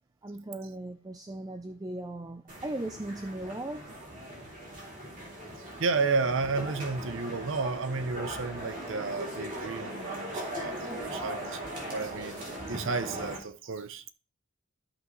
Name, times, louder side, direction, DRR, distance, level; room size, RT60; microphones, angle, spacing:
voice 1, 0.2-3.9 10.9-11.1, right 1 dB, 15° right, 0.4 m, -38 dB
sound 1, 2.5-13.4, right 1 dB, 40° right, 3.0 m, -39 dB
voice 2, 5.8-11.6 11.9-14.1, right 4 dB, 65° right, 0.6 m, -32 dB
12.5 x 5.6 x 3.1 m
head